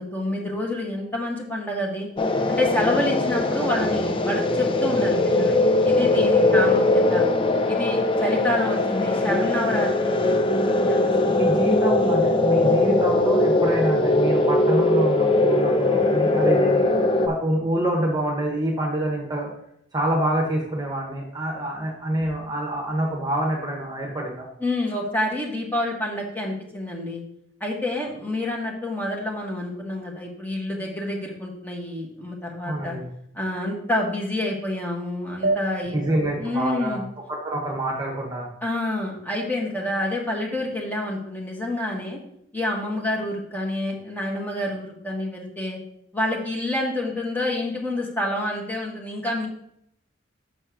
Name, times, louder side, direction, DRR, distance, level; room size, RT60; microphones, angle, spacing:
voice 1, 0.0-2.1 2.5-5.5 5.8-7.2 7.7-11.1 11.5-11.6 24.6-27.2 27.6-33.0 33.3-36.0 36.4-37.0 38.6-42.2 42.5-45.8 46.1-49.5, left 1 dB, 10° left, -1 dB, 1.7 m, -28 dB
sound 1, 2.2-17.3, left 2 dB, 25° left, 0.6 m, -20 dB
voice 2, 11.3-19.5 19.9-24.5 32.7-33.1 35.9-37.0 37.3-38.5, right 1 dB, 20° right, 0 dB, 1.3 m, -26 dB
sound 2, 35.4-38.4, right 2 dB, 50° right, 0.6 m, -32 dB
6.9 x 4.4 x 6.3 m, 0.71 s
head